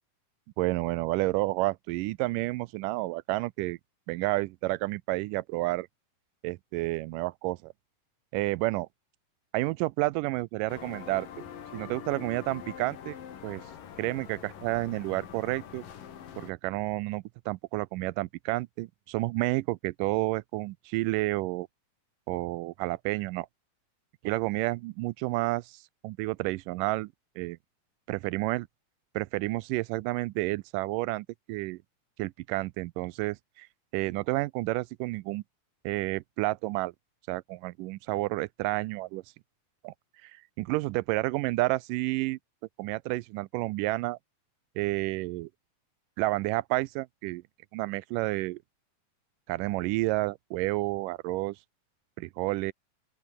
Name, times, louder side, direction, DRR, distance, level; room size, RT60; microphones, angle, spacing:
voice 1, 0.6-3.8 4.1-5.9 6.4-7.7 8.3-8.9 9.5-11.3 11.7-13.2 13.4-13.6 14.0-15.8 16.4-21.7 22.3-23.5 24.2-27.6 28.1-28.7 29.2-31.8 32.2-33.7 33.9-35.4 35.8-36.9 37.3-39.2 39.8-39.9 40.2-40.3 40.6-42.4 42.8-44.2 44.8-45.5 46.2-47.4 47.7-48.6 49.5-51.6 52.2-52.7, right 20 dB, 85° right, 2.2 m, -30 dB
sound 1, 10.7-16.5, left 8 dB, 90° left, 4.1 m, -44 dB
open air
omnidirectional pair, 3.7 m